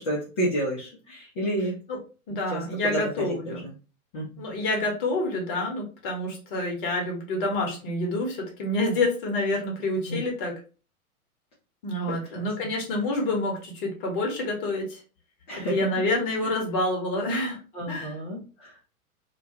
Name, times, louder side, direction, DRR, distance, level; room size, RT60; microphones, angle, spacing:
voice 1, 0.0-1.8 2.5-2.6 2.9-3.0 3.6-3.7 4.1-4.3 10.1-10.2 12.1-12.5 15.5-15.8 16.4-16.5 17.7-18.8, right 1 dB, 20° left, -6 dB, 0.5 m, -30 dB
voice 2, 2.3-3.6 4.4-10.6 11.8-15.0 15.7-17.6 17.9-18.2, left 2 dB, 40° left, 0 dB, 0.9 m, -28 dB
2.2 x 2.1 x 2.7 m, 0.35 s
figure-of-eight pair, 100°, 44 cm